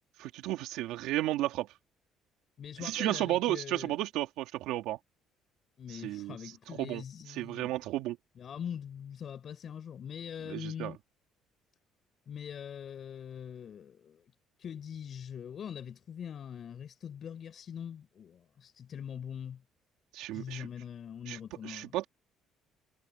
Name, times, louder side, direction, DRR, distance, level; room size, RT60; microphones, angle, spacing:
voice 1, 0.2-1.7 2.8-5.0 6.0-6.3 6.8-7.0 7.4-8.2 10.5-10.9 20.1-20.7 21.3-21.4 21.6-22.1, right 15 dB, 85° right, 3.4 m, -33 dB
voice 2, 2.6-3.9 5.8-7.8 8.4-11.0 12.3-14.2 14.6-19.6 20.3-22.0, left 8 dB, 45° left, 7.2 m, -42 dB
cardioid pair, 120°, 0 cm